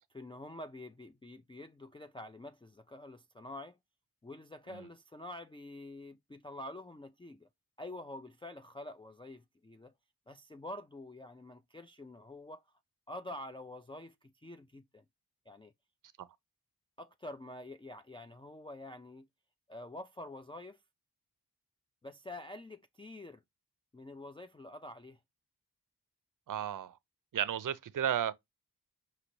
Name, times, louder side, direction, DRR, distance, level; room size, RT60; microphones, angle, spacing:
voice 1, 0.1-3.8 4.2-7.5 7.8-9.9 10.3-12.6 13.1-15.0 15.5-15.7 17.0-19.3 19.7-20.8 22.0-23.4 23.9-25.2, left 1 dB, 15° left, 0.4 m, -47 dB
voice 2, 26.5-27.0 27.3-28.3, right 9 dB, 55° right, 0.5 m, -33 dB
5.0 x 2.9 x 2.9 m
cardioid pair, 50°, 39 cm